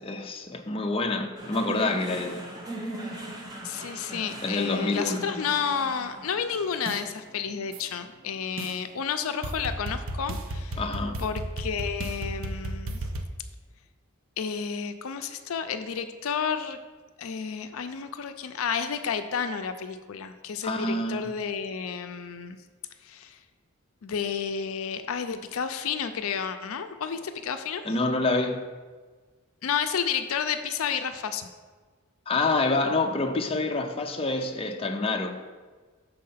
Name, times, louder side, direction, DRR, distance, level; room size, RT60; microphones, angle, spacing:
voice 1, 0.0-2.4 4.4-5.2 10.8-11.2 20.6-21.3 27.8-28.6 32.3-35.4, left 2 dB, 25° left, 0.5 m, -27 dB
sound 1, 1.4-9.8, right 1 dB, 20° right, 1.0 m, -40 dB
voice 2, 3.6-10.8 11.2-13.0 14.4-16.8 17.2-22.6 23.0-23.4 24.0-27.8 29.6-31.5, left 7 dB, 80° left, 0.5 m, -31 dB
sound 2, 6.9-7.0 7.7-7.8 8.6-8.8 9.4-13.3, right 1 dB, 70° right, 0.6 m, -33 dB
6.5 x 4.2 x 5.6 m
head